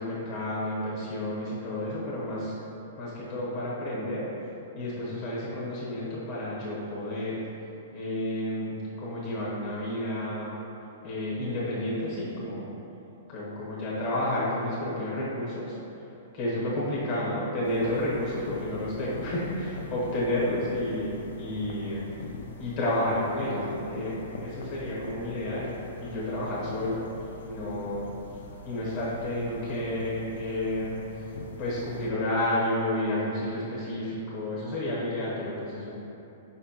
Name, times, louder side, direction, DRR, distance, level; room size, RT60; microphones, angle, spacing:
voice 1, 0.0-2.5 3.0-4.3 4.7-7.4 7.9-10.6 11.0-12.7 13.3-15.8 16.3-22.3 22.6-25.7 26.0-27.1 27.4-28.1 28.6-31.3 31.6-35.9, left 1 dB, 30° left, -7 dB, 1.0 m, -31 dB
sound 1, 17.6-32.1, left 3 dB, 65° left, 0.3 m, -43 dB
5.5 x 2.2 x 2.8 m, 2.9 s
hypercardioid pair, 175°, 0 cm